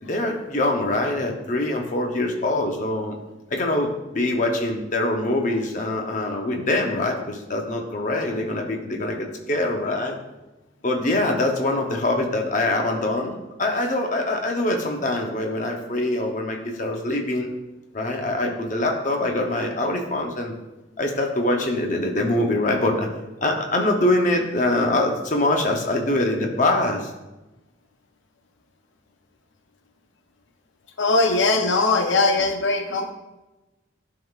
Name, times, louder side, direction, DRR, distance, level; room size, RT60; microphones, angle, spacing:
voice 1, 0.0-3.2 3.5-10.2 10.8-17.5 17.9-20.5 21.0-23.1 23.4-27.1, left 2 dB, 40° left, 2 dB, 0.7 m, -24 dB
voice 2, 31.0-33.1, left 3 dB, 75° left, 5 dB, 0.6 m, -20 dB
11.0 x 3.7 x 2.4 m, 1.1 s
head